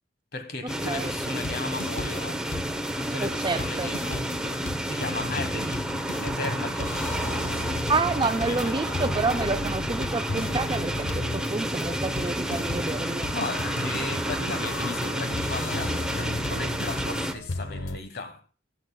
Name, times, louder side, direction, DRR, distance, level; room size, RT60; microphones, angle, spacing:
voice 1, 0.3-2.4 3.0-7.1 7.5-7.7 8.5-8.9 13.3-18.4, left 2 dB, 50° left, 1.3 m, -36 dB
sound 1, 0.7-17.3, right 1 dB, 5° right, 0.8 m, -30 dB
sound 2, 1.4-2.2 2.5-2.9 3.2-3.3 3.6-18.0, left 2 dB, 85° left, 1.0 m, -35 dB
voice 2, 3.2-3.9 7.9-13.3, right 3 dB, 25° right, 0.4 m, -28 dB
22.0 x 7.8 x 2.3 m
head